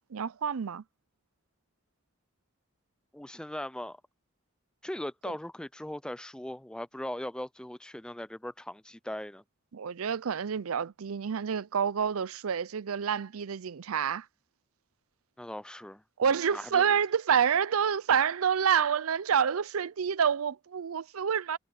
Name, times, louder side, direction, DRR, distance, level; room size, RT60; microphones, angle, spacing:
voice 1, 0.1-0.8 9.7-14.3 16.2-21.6, right 7 dB, 90° right, 0.5 m, -28 dB
voice 2, 3.1-4.0 4.8-9.4 15.4-16.0 16.4-17.0, left 1 dB, 5° left, 0.3 m, -39 dB
head